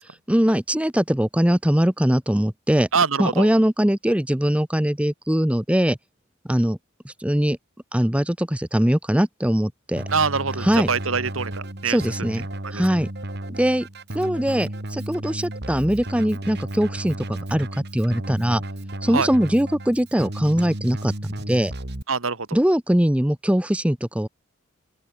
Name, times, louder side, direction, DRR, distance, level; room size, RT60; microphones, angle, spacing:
voice 1, 0.3-2.9 3.2-6.0 6.5-6.8 7.0-7.6 7.9-10.0 10.6-10.9 11.9-12.5 12.7-13.1 13.5-13.9 14.1-17.7 17.9-18.6 19.0-21.1 21.5-21.7 22.5-24.3, equal, 5° right, 0.8 m, -21 dB
voice 2, 2.9-3.5 10.1-12.0 12.6-12.8 19.1-19.3 22.1-22.6, right 5 dB, 70° right, 1.6 m, -24 dB
Keyboard (musical), 10.0-22.0, right 1 dB, 50° right, 2.8 m, -33 dB
open air
head